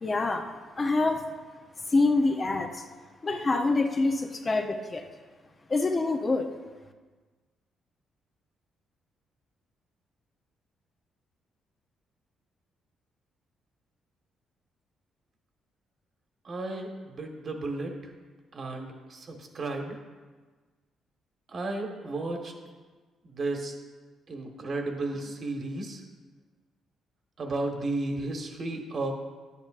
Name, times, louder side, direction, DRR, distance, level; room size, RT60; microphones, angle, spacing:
voice 1, 0.0-0.5 0.8-1.2 1.9-2.9 3.2-5.0 5.7-6.5, left 3 dB, 30° left, 5 dB, 0.7 m, -26 dB
voice 2, 16.4-17.9 18.5-19.9 21.5-22.5 23.2-23.7 24.3-26.0 27.4-29.1, right 2 dB, 45° right, 3 dB, 1.3 m, -33 dB
10.5 x 8.5 x 2.5 m, 1.4 s
cardioid pair, 90°, 0 cm